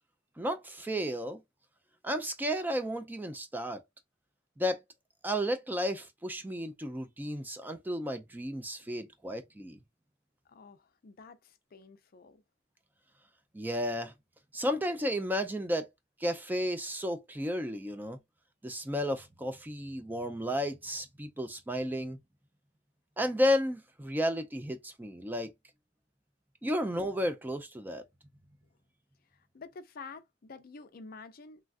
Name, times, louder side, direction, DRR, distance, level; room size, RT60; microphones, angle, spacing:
voice 1, 0.4-1.4 2.0-3.8 4.6-4.8 5.2-9.8 13.5-14.1 14.5-15.9 16.2-18.2 18.6-22.2 23.2-25.5 26.6-28.0, equal, 10° right, 0.3 m, -33 dB
voice 2, 10.5-12.4 29.3-31.6, left 4 dB, 50° left, 0.4 m, -49 dB
3.1 x 2.3 x 2.4 m
head